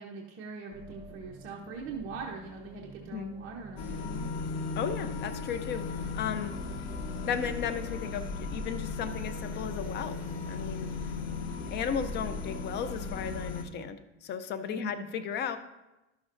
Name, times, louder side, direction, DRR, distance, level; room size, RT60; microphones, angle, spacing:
voice 1, 0.0-4.3 14.7-15.1, right 4 dB, 40° right, -1 dB, 0.8 m, -41 dB
sound 1, 0.7-10.6, right 2 dB, 15° right, 1.0 m, -50 dB
sound 2, 3.8-13.6, left 4 dB, 70° left, 1.0 m, -36 dB
voice 2, 4.8-6.5 7.2-10.1 10.5-10.9 11.7-15.6, left 7 dB, 35° left, 10 dB, 0.5 m, -35 dB
12.0 x 6.1 x 2.5 m, 0.99 s
supercardioid pair, 135°, 33 cm